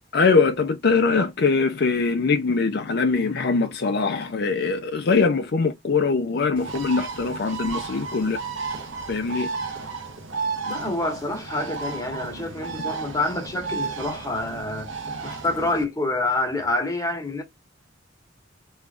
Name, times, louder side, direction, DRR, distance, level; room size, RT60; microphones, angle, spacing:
voice 1, 0.1-8.4 9.1-9.5, left 4 dB, 55° left, 0.5 m, -22 dB
Bird, 6.6-15.8, right 4 dB, 85° right, 1.1 m, -33 dB
voice 2, 10.6-14.9 15.2-17.4, left 2 dB, 20° left, 1.1 m, -27 dB
3.4 x 3.1 x 2.5 m
head